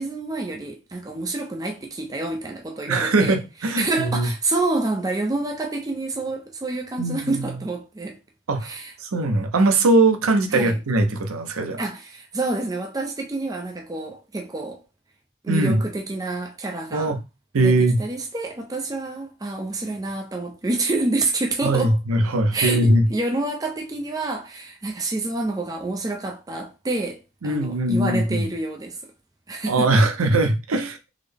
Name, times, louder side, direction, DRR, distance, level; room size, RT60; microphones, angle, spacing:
voice 1, 0.0-3.4 3.7-8.2 8.6-8.9 10.5-10.8 11.8-14.8 15.4-17.2 17.6-22.0 22.5-29.0 29.5-30.0, right 2 dB, 15° right, 0.4 m, -28 dB
voice 2, 2.9-4.3 7.0-7.4 8.5-8.7 9.0-11.8 15.5-15.8 16.9-17.2 17.5-18.0 21.6-23.1 27.4-28.5 29.7-31.1, right 2 dB, 85° right, 0.6 m, -20 dB
3.7 x 2.1 x 3.3 m
head